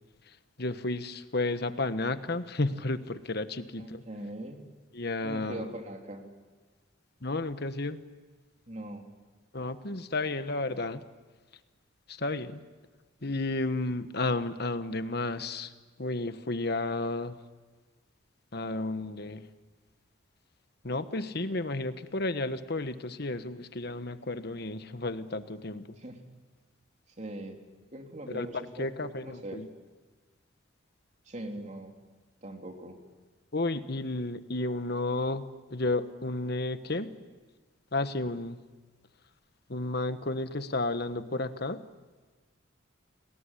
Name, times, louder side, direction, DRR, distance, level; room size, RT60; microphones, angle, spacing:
voice 1, 0.3-4.0 4.9-5.7 7.2-8.0 9.5-11.0 12.1-12.6 13.2-15.7 16.0-17.4 18.5-19.5 20.8-26.0 28.3-28.5 28.8-29.7 33.5-35.4 35.7-37.1 37.9-38.6 39.7-41.8, left 2 dB, 55° left, 11 dB, 1.3 m, -32 dB
voice 2, 3.8-4.7 5.2-6.3 8.7-9.1 26.0-26.2 27.2-27.6 27.9-28.9 29.2-29.6 31.2-32.0 32.4-33.0, right 1 dB, 35° right, 3 dB, 3.2 m, -41 dB
30.0 x 20.0 x 10.0 m, 1.3 s
head